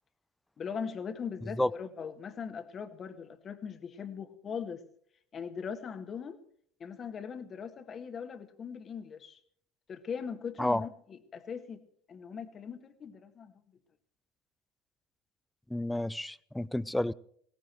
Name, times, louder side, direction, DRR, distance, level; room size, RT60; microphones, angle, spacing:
voice 1, 0.6-4.8 5.3-6.4 6.8-9.4 9.9-11.8 12.1-13.5, left 6 dB, 35° left, 1.7 m, -40 dB
voice 2, 15.7-17.1, left 1 dB, 5° left, 0.5 m, -30 dB
19.5 x 17.5 x 3.1 m
hypercardioid pair, 75°, 0 cm